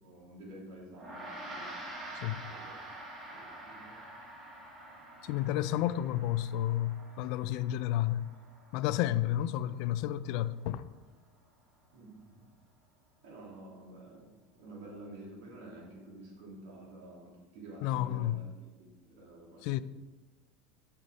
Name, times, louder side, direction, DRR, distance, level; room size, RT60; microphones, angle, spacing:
voice 1, 0.0-1.7 2.4-2.8 3.3-4.1 5.3-5.6 11.9-12.5 13.2-19.8, right 1 dB, 75° right, 2.2 m, -50 dB
Gong, 0.9-10.6, right 1 dB, 20° right, 1.1 m, -47 dB
voice 2, 5.2-8.3 8.7-10.8 17.8-18.4 19.6-19.8, left 13 dB, 55° left, 0.3 m, -31 dB
6.6 x 5.7 x 4.7 m
supercardioid pair, 155°, 0 cm